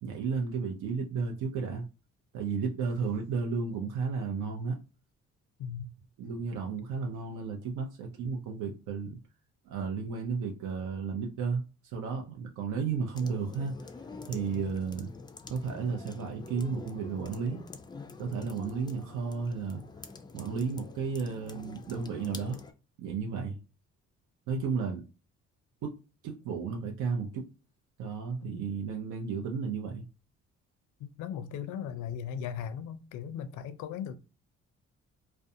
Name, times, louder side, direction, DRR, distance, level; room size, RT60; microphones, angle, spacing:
voice 1, 0.0-1.9 2.3-4.8 6.2-9.2 9.6-13.7 14.3-15.1 15.5-17.6 18.2-19.8 20.3-22.6 23.0-23.6 24.5-25.0 25.8-26.0 26.2-27.4 28.0-30.1, right 5 dB, 80° right, 0.6 m, -33 dB
sound 1, 13.1-22.7, left 4 dB, 15° left, 0.3 m, -46 dB
voice 2, 31.0-34.2, left 8 dB, 80° left, 0.5 m, -37 dB
2.4 x 2.2 x 2.6 m
cardioid pair, 90°, 30 cm